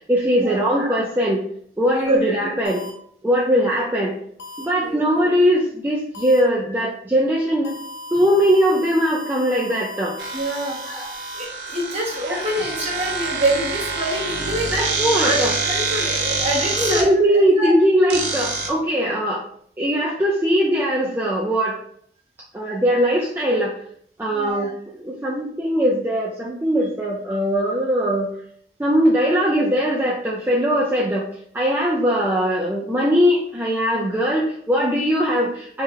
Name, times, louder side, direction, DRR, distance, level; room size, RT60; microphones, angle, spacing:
voice 1, 0.1-1.4 1.8-2.8 3.2-4.2 4.6-7.7 8.1-10.2 10.9-11.1 12.3-12.4 14.7-15.5 16.7-19.4 19.8-21.8 22.5-23.7 24.2-28.3 28.8-31.2 31.5-35.8, equal, 10° right, -4 dB, 0.3 m, -20 dB
voice 2, 1.9-2.3 4.8-5.0 10.3-10.8 11.3-14.7 15.2-17.7 24.3-24.7, right 1 dB, 35° right, -4 dB, 1.1 m, -26 dB
sound 1, 2.6-2.9 4.4-4.6 6.1-6.4 7.6-11.4, left 1 dB, 85° left, 0.5 m, -36 dB
sound 2, 10.2-17.0 18.1-18.7, right 4 dB, 70° right, 0.5 m, -26 dB
2.8 x 2.0 x 3.7 m, 0.64 s
head